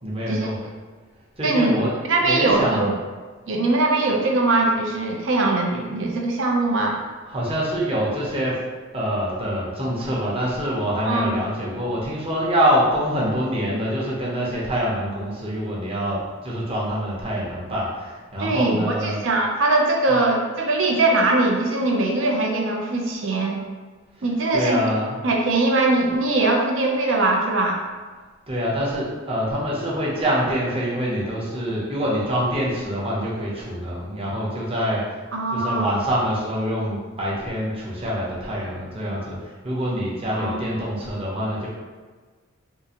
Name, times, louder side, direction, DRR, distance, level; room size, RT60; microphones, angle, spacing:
voice 1, 0.0-0.6 1.4-2.9 7.3-8.6 8.9-19.2 24.5-25.2 28.5-35.2 35.5-41.7, equal, 30° right, -5 dB, 0.8 m, -25 dB
voice 2, 1.4-1.8 2.1-2.9 3.5-7.0 11.0-11.3 18.4-23.6 24.2-24.8 25.2-27.8 35.3-35.9 40.3-40.6, right 2 dB, 70° right, 0 dB, 0.6 m, -21 dB
3.7 x 2.5 x 2.9 m, 1.4 s
head